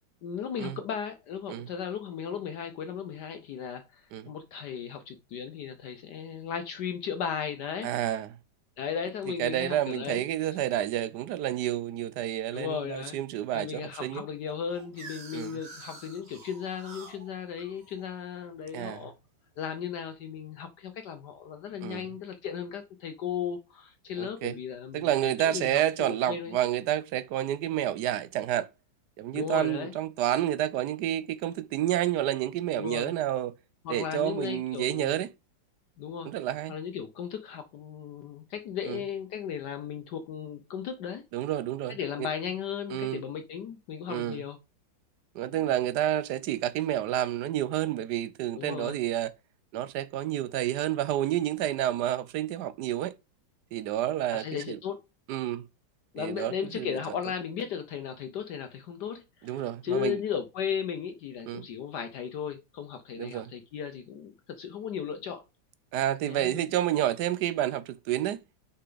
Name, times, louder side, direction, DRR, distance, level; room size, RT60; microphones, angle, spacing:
voice 1, 0.2-8.1 8.8-10.2 12.5-13.2 13.5-19.1 19.6-26.6 29.3-29.9 32.8-33.1 33.8-35.2 36.0-36.3 36.7-41.2 41.9-44.6 45.6-45.7 48.6-49.0 54.3-55.0 56.1-65.4 66.2-66.7, left 7 dB, 65° left, 1.3 m, -36 dB
voice 2, 7.8-8.3 9.4-14.2 15.3-15.6 18.7-19.0 21.8-22.0 24.2-24.6 24.9-28.7 29.2-33.5 33.9-35.3 36.2-36.8 38.9-39.0 41.3-42.3 42.9-43.2 44.1-44.4 45.3-49.3 49.7-53.2 53.7-54.8 55.3-55.7 56.2-56.9 59.4-60.2 61.5-61.7 63.2-63.5 65.9-68.4, right 12 dB, 75° right, 1.0 m, -29 dB
sound 1, 14.5-19.3, right 3 dB, 35° right, 1.4 m, -49 dB
6.5 x 5.7 x 3.9 m
omnidirectional pair, 2.1 m